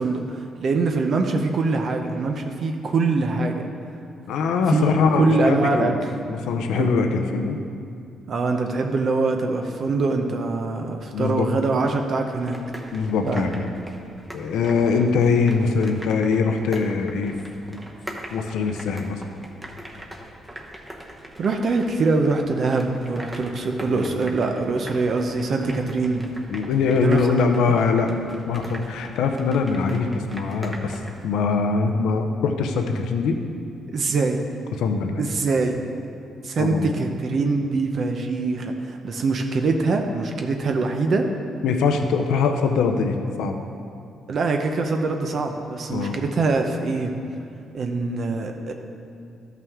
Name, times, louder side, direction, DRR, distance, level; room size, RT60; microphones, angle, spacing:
voice 1, 0.0-3.6 4.7-6.1 6.7-6.9 8.3-12.6 13.3-13.5 21.4-26.3 27.0-27.8 33.9-34.4 35.2-35.8 36.4-41.3 44.3-47.1 47.7-48.7, right 3 dB, 55° right, 4 dB, 0.6 m, -23 dB
voice 2, 4.3-5.9 6.2-7.6 11.1-11.5 12.9-13.7 14.3-17.3 17.7-17.8 18.3-19.2 23.9-24.1 26.5-33.4 34.8-35.2 36.6-36.9 41.6-43.6 45.9-46.2, left 5 dB, 85° left, 5 dB, 0.6 m, -22 dB
sound 1, 12.4-31.2, right 1 dB, 15° right, 1.0 m, -41 dB
12.5 x 5.8 x 3.6 m, 2.4 s
cardioid pair, 90°, 0 cm